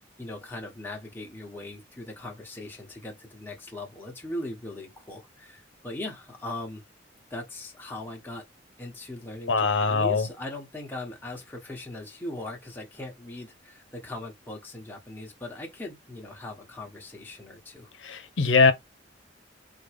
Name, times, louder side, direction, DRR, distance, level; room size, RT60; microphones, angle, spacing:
voice 1, 0.2-6.8 7.3-8.4 8.8-17.9, left 1 dB, 10° left, 1.2 m, -39 dB
voice 2, 9.5-10.3 18.0-18.7, left 4 dB, 85° left, 0.8 m, -21 dB
3.8 x 3.7 x 3.5 m
head